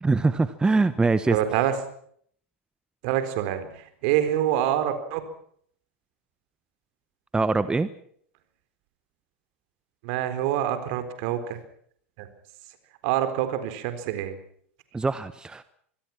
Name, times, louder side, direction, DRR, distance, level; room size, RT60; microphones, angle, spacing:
voice 1, 0.0-1.4 7.3-7.9 14.9-15.6, right 3 dB, 10° right, 14 dB, 1.1 m, -23 dB
voice 2, 1.3-1.7 3.0-5.2 10.0-11.6 12.2-12.3 13.0-14.4, right 11 dB, 55° right, 10 dB, 4.2 m, -26 dB
25.5 x 21.0 x 6.0 m, 0.63 s
hypercardioid pair, 95°, 7 cm